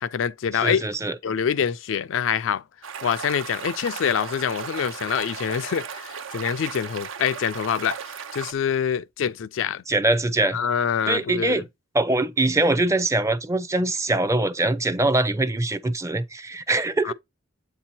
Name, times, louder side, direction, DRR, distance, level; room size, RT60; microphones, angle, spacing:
voice 1, 0.0-0.9 1.2-2.6 3.0-8.0 8.3-9.8 10.5-11.6 17.0-17.1, left 8 dB, 65° left, 0.3 m, -25 dB
voice 2, 0.6-1.1 9.9-10.6 11.1-11.6 11.9-17.1, right 2 dB, 15° right, 0.5 m, -23 dB
sound 1, 2.8-8.5, right 6 dB, 80° right, 0.7 m, -35 dB
8.1 x 2.8 x 4.3 m
head